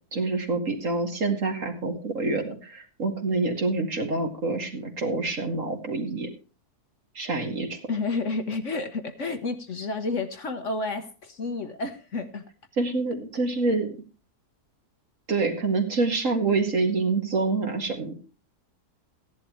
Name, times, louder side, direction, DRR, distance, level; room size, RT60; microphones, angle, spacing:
voice 1, 0.1-6.3 7.1-7.8 12.8-13.9 15.3-18.1, right 3 dB, 50° right, 4 dB, 2.3 m, -26 dB
voice 2, 7.9-12.5, left 3 dB, 50° left, 8 dB, 1.3 m, -30 dB
15.5 x 11.0 x 3.1 m, 0.33 s
omnidirectional pair, 1.7 m